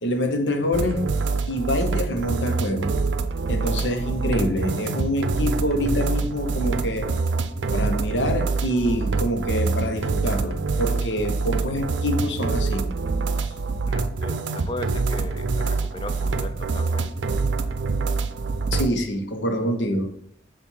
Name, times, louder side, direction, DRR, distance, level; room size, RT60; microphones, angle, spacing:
voice 1, 0.0-1.0 1.5-2.9 3.5-7.1 7.7-12.9 18.7-20.1, equal, 85° left, 5 dB, 1.0 m, -26 dB
sound 1, 0.7-18.9, right 4 dB, 90° right, 0.5 m, -25 dB
voice 2, 13.9-17.1, left 2 dB, 25° left, 9 dB, 0.4 m, -37 dB
7.3 x 2.6 x 5.5 m, 0.66 s
head